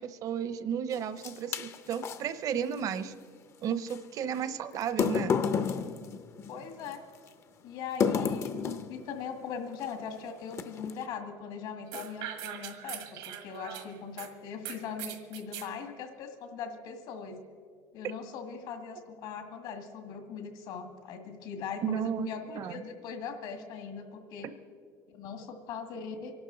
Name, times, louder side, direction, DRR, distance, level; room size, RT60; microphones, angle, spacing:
voice 1, 0.0-3.1 3.6-5.4 21.8-22.3 22.6-22.8, right 8 dB, 50° right, 13 dB, 0.8 m, -33 dB
sound 1, 0.9-2.2 3.9-4.0 4.8-6.9 8.0-9.0 9.8-10.0 10.5-11.0, left 6 dB, 35° left, 0.7 m, -30 dB
voice 2, 6.5-7.0 7.6-8.5 8.9-17.4 17.9-24.5 25.1-26.3, left 6 dB, 65° left, 6 dB, 1.9 m, -40 dB
sound 2, 11.9-14.3 14.6-15.7, right 10 dB, 80° right, 1.6 m, -41 dB
24.0 x 12.0 x 3.9 m, 2.1 s
cardioid pair, 125°, 8 cm